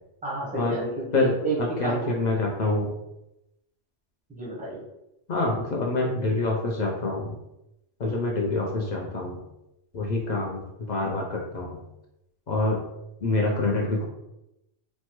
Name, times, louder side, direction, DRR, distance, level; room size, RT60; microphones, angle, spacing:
voice 1, 0.2-2.0 4.3-4.9, right 2 dB, 10° right, -4 dB, 0.5 m, -31 dB
voice 2, 1.1-2.9 5.3-7.4 8.0-9.4 9.9-11.8 12.5-12.8 13.2-14.1, left 2 dB, 60° left, -1 dB, 0.5 m, -26 dB
3.1 x 2.1 x 2.9 m, 0.89 s
omnidirectional pair, 1.2 m